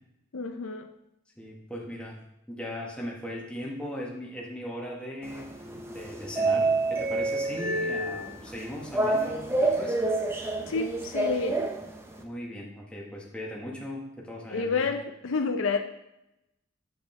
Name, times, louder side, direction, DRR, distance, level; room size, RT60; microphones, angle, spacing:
voice 1, 0.3-0.9 10.6-11.6 14.5-15.8, left 4 dB, 70° left, 6 dB, 0.6 m, -29 dB
voice 2, 1.4-2.2 2.5-5.6 5.9-10.0 12.2-14.9, equal, 5° left, -3 dB, 1.2 m, -38 dB
sound 1, 5.2-12.2, right 2 dB, 10° right, 0.5 m, -28 dB
7.6 x 4.9 x 3.6 m, 0.85 s
head